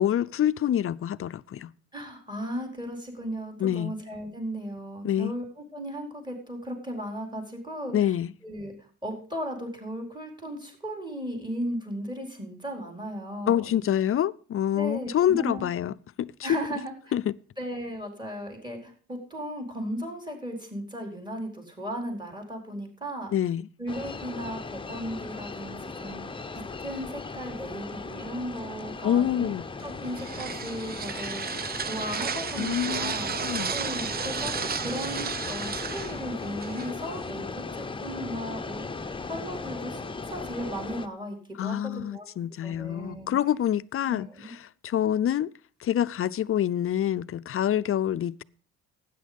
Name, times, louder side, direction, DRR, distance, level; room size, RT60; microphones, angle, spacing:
voice 1, 0.0-1.7 3.6-3.9 5.0-5.3 7.9-8.3 13.5-16.3 17.1-17.3 23.3-23.7 29.0-29.6 32.6-33.7 41.6-45.5 45.8-48.4, left 10 dB, 45° left, 0.5 m, -26 dB
voice 2, 1.9-7.9 8.4-13.8 14.7-15.7 16.4-17.0 17.6-23.3 23.8-26.2 26.5-29.5 29.8-33.3 33.7-37.4 37.7-38.8 39.3-42.3 42.6-43.3 44.0-44.5, equal, 15° right, 4.5 m, -36 dB
sound 1, 23.9-41.1, left 4 dB, 15° left, 0.8 m, -37 dB
sound 2, 29.8-37.3, right 6 dB, 30° right, 0.5 m, -34 dB
12.5 x 9.4 x 5.2 m
cardioid pair, 90°, 30 cm